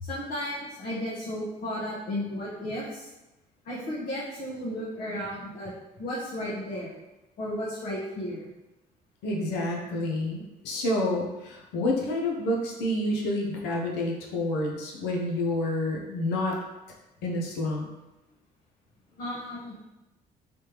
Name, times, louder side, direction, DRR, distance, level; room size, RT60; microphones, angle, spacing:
voice 1, 0.0-3.1 3.6-5.7 6.0-7.0 7.4-8.5 19.2-19.9, left 1 dB, 60° left, -7 dB, 1.0 m, -34 dB
voice 2, 9.2-16.5 17.2-17.8, left 1 dB, 90° left, 0 dB, 0.8 m, -28 dB
3.4 x 3.2 x 2.9 m, 0.98 s
cardioid pair, 110°, 17 cm